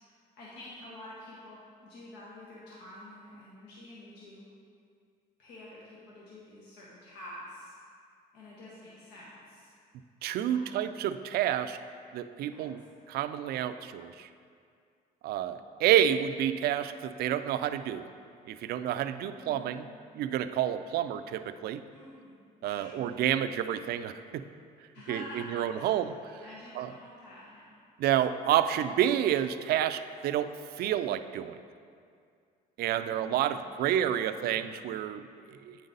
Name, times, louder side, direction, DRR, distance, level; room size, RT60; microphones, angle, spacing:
voice 1, 0.4-4.4 5.4-7.7 8.3-9.7 10.5-10.9 12.4-12.7 19.4-19.8 21.9-23.1 24.9-26.0 26.4-27.7 33.0-34.7, left 1 dB, 90° left, -6 dB, 1.2 m, -48 dB
voice 2, 10.2-11.8 12.1-12.8 13.1-14.3 15.2-18.0 18.4-19.9 20.1-21.8 22.6-24.4 25.1-26.4 26.8-26.9 28.0-30.5 30.7-31.6 32.8-35.8, right 11 dB, 65° right, 10 dB, 0.4 m, -29 dB
8.7 x 5.3 x 3.9 m, 2.3 s
cardioid pair, 110°, 17 cm